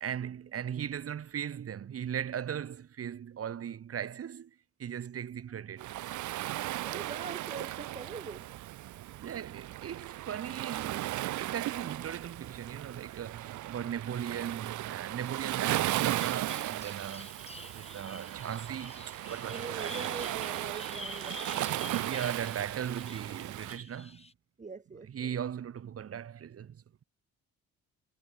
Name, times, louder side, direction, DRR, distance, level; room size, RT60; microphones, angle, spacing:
voice 1, 0.0-5.9 7.0-7.1 9.2-17.3 17.7-20.1 22.0-24.3 25.1-26.8, right 9 dB, 50° right, 1.7 m, -38 dB
Waves surf, 5.8-23.8, right 15 dB, 75° right, 0.8 m, -36 dB
voice 2, 6.8-8.5 19.5-22.3 24.6-25.4, right 4 dB, 25° right, 1.5 m, -43 dB
Bird vocalization bird call bird song, 15.9-24.3, left 3 dB, 20° left, 7.6 m, -48 dB
cardioid pair, 90°, 30 cm